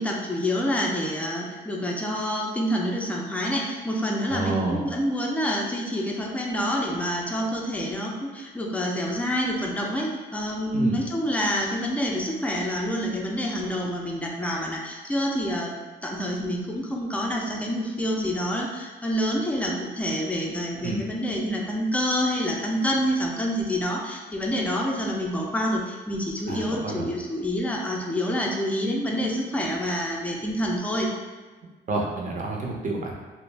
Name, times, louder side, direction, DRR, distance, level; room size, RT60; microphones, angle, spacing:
voice 1, 0.0-15.7 16.0-31.1, equal, 5° left, -1 dB, 0.5 m, -27 dB
voice 2, 4.3-4.8 10.7-11.0 20.8-21.0 26.5-27.1 31.9-33.1, right 2 dB, 40° right, -1 dB, 0.6 m, -29 dB
2.4 x 2.1 x 3.2 m, 1.3 s
cardioid pair, 90°, 20 cm